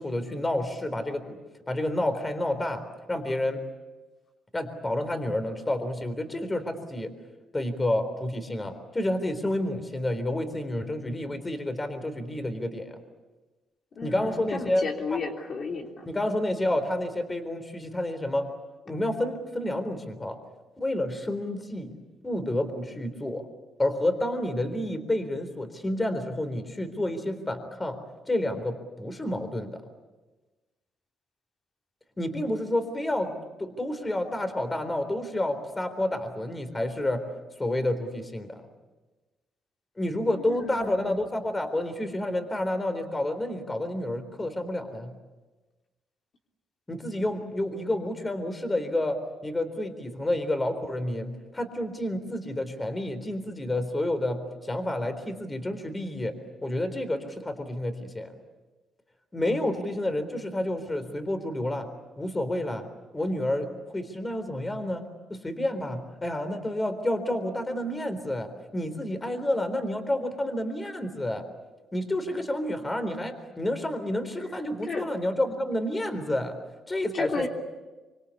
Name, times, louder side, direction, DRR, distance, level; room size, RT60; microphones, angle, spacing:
voice 1, 0.0-1.4 1.7-2.8 3.1-3.6 4.5-7.1 7.5-12.9 14.0-14.8 15.1-15.2 16.1-18.5 18.9-20.4 20.8-21.9 22.2-23.5 23.8-28.0 28.3-29.8 32.2-37.2 37.6-38.6 40.0-45.1 46.9-49.2 49.4-56.3 56.6-58.3 59.3-61.9 62.2-62.8 63.1-65.0 65.3-71.4 71.9-76.5 76.9-77.5, left 1 dB, 20° left, 9 dB, 3.9 m, -29 dB
voice 2, 14.0-16.1 40.4-41.3 74.8-75.1 77.1-77.5, left 4 dB, 50° left, 2 dB, 3.5 m, -34 dB
25.5 x 25.5 x 8.6 m, 1.2 s
cardioid pair, 90°, 0 cm